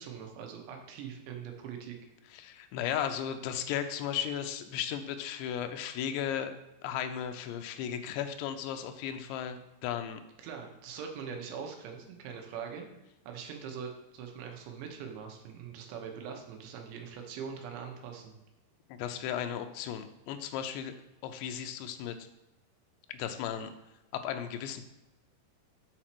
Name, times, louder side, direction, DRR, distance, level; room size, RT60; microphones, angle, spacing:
voice 1, 0.0-2.0 10.4-12.9 13.3-18.3, right 7 dB, 90° right, 3 dB, 3.3 m, -42 dB
voice 2, 2.3-6.6 6.8-10.2 18.9-20.9 21.2-22.3 23.1-23.7 24.1-24.9, left 9 dB, 85° left, 7 dB, 2.8 m, -35 dB
7.6 x 4.3 x 5.9 m, 0.98 s
omnidirectional pair, 4.9 m